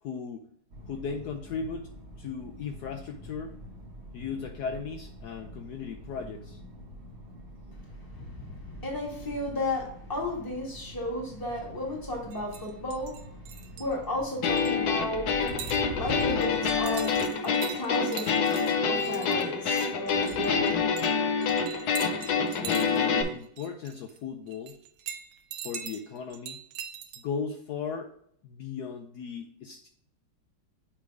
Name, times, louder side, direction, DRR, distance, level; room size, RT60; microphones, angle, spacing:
voice 1, 0.0-0.5 0.9-1.9 2.2-3.6 4.1-6.6 22.1-24.8 25.6-26.6 27.2-28.1 28.4-29.9, left 6 dB, 85° left, 5 dB, 0.8 m, -37 dB
sound 1, 0.7-17.3, equal, 40° right, 1.0 m, -46 dB
voice 2, 7.8-13.2 13.7-18.3 18.8-20.8, left 1 dB, 10° left, -2 dB, 1.5 m, -34 dB
sound 2, 12.3-13.9 14.3-14.7 15.4-15.8 16.2-21.1 21.4-24.2 24.5-27.2, right 9 dB, 80° right, 1.5 m, -42 dB
sound 3, 14.4-23.2, left 5 dB, 65° left, 1.0 m, -27 dB
7.3 x 3.3 x 4.7 m, 0.67 s
omnidirectional pair, 2.3 m